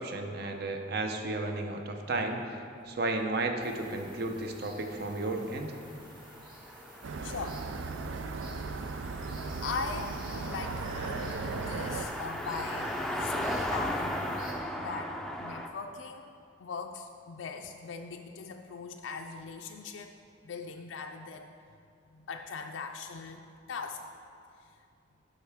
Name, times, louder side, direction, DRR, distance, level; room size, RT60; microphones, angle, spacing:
voice 1, 0.0-2.6 2.9-5.7, right 2 dB, 55° right, 4 dB, 0.7 m, -33 dB
sound 1, 3.6-14.5, right 1 dB, 25° right, 1.1 m, -50 dB
Car passing by, 5.6-15.7, equal, ahead, 0.4 m, -37 dB
sound 2, 7.0-12.1, right 4 dB, 85° right, 0.4 m, -37 dB
voice 2, 7.2-7.8 9.6-14.4 14.8-16.3 16.6-20.2 20.4-21.5 22.1-24.1, left 4 dB, 85° left, 3 dB, 0.4 m, -40 dB
11.5 x 5.5 x 3.5 m, 2.4 s
head